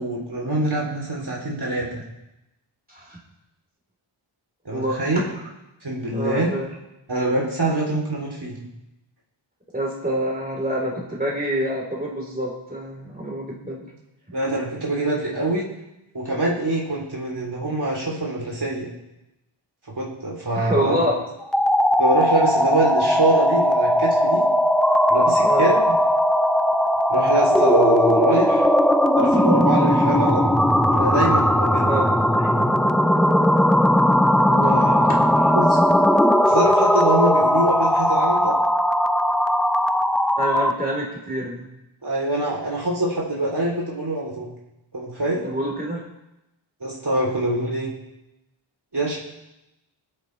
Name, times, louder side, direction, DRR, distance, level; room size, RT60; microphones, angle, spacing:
voice 1, 0.0-2.0 4.6-5.3 5.8-6.6 7.1-8.5 14.3-15.7 16.1-18.9 20.0-21.0 22.0-24.4 25.1-25.8 27.1-28.6 29.1-30.5 30.9-31.9 32.5-32.7 34.7-35.0 35.5-35.8 36.4-38.5 42.0-44.5 44.9-45.5 46.8-47.9 48.9-49.2, right 2 dB, 50° right, -4 dB, 3.2 m, -24 dB
voice 2, 4.7-5.0 6.1-6.7 9.7-13.9 20.5-21.2 25.4-25.7 31.8-32.0 34.4-34.8 35.1-35.5 40.4-41.7 45.4-46.0, equal, 20° right, -3 dB, 3.6 m, -27 dB
sound 1, 21.4-40.8, equal, ahead, 0.5 m, -18 dB
22.5 x 8.8 x 3.2 m, 0.92 s
wide cardioid pair, 50°, 49 cm